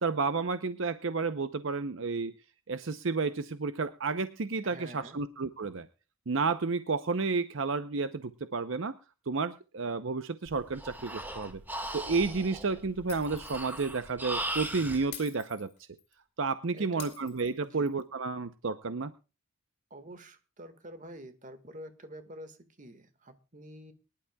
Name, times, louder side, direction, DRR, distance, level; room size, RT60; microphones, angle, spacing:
voice 1, 0.0-2.3 2.7-5.9 6.3-8.9 9.3-11.6 11.9-15.7 16.4-19.1, right 4 dB, 65° right, 11 dB, 0.7 m, -31 dB
voice 2, 4.6-5.2 16.7-17.1 17.6-17.9 19.9-23.9, right 1 dB, 35° right, 9 dB, 1.7 m, -48 dB
Breathing, 10.5-15.0, right 1 dB, 10° right, 1.7 m, -38 dB
Shatter, 13.1-13.7 14.0-14.1 15.1-16.1 17.0-18.0, left 10 dB, 50° left, 2.7 m, -47 dB
23.5 x 11.5 x 2.3 m, 0.32 s
head